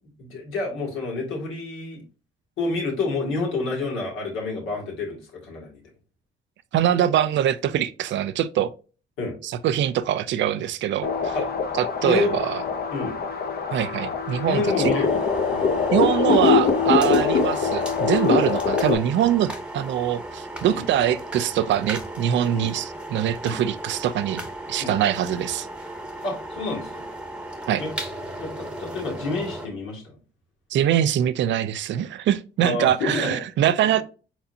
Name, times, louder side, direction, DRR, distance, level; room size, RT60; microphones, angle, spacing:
voice 1, 0.2-2.0 2.6-5.8 9.2-9.4 11.3-11.4 12.0-12.3 12.9-13.2 14.3-15.2 15.5-15.7 20.7-20.9 22.4-22.7 23.4-23.6 24.8-25.0 26.2-27.0 27.8-27.9 28.4-30.1 32.6-33.4 33.8-34.0, left 3 dB, 85° left, 2.2 m, -29 dB
voice 2, 6.7-8.7 9.4-11.4 11.8-12.6 13.7-15.0 15.9-25.7 27.7-27.8 30.7-34.0, right 10 dB, 70° right, 0.4 m, -23 dB
sound 1, 11.0-19.0, left 5 dB, 50° left, 0.8 m, -23 dB
sound 2, 14.1-29.7, right 1 dB, 5° right, 0.9 m, -36 dB
4.4 x 4.0 x 2.7 m
cardioid pair, 90°, 20 cm